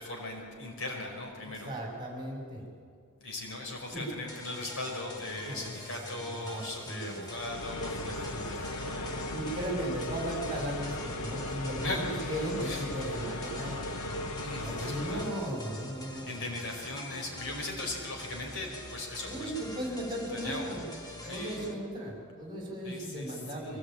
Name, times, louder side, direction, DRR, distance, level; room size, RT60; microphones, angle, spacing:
voice 1, 0.0-1.7 3.2-9.4 11.8-12.8 13.6-14.0 14.4-15.2 16.2-20.0 20.3-20.7 21.2-21.7 22.8-23.8, left 2 dB, 65° left, 1 dB, 5.0 m, -39 dB
voice 2, 1.6-2.7 3.9-4.1 5.4-5.7 6.3-7.2 8.0-8.5 9.3-13.8 14.5-16.3 19.2-20.9 21.2-23.8, right 1 dB, 20° right, 0 dB, 5.4 m, -36 dB
sound 1, 4.3-21.7, left 1 dB, 20° left, 1.9 m, -45 dB
sound 2, 7.3-15.4, left 1 dB, 90° left, 1.3 m, -37 dB
23.5 x 18.0 x 8.9 m, 2.2 s
head